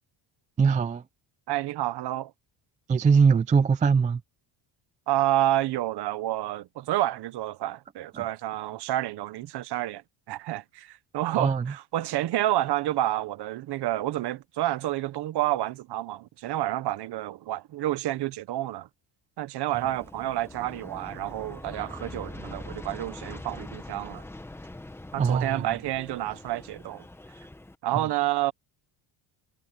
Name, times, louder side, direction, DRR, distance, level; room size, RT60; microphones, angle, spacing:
voice 1, 0.6-1.0 2.9-4.2 11.4-11.7 25.2-25.7, right 5 dB, 20° right, 0.3 m, -21 dB
voice 2, 1.5-2.3 5.1-10.0 10.3-18.9 19.4-24.2 25.1-27.0 27.8-28.5, right 14 dB, 55° right, 1.0 m, -29 dB
Aircraft, 19.7-27.7, left 2 dB, 5° left, 0.9 m, -43 dB
cardioid pair, 170°, 49 cm